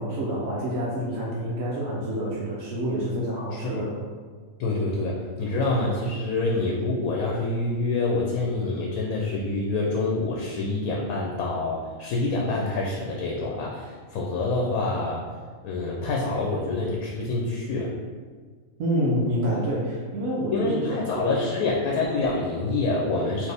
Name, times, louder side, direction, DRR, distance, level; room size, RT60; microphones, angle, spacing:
voice 1, 0.0-3.9 18.8-21.4, equal, 70° right, -5 dB, 1.1 m, -27 dB
voice 2, 3.5-3.8 4.6-15.2 15.6-17.9 20.5-23.5, left 2 dB, 85° left, -2 dB, 1.1 m, -26 dB
4.0 x 2.9 x 3.3 m, 1.6 s
omnidirectional pair, 1.5 m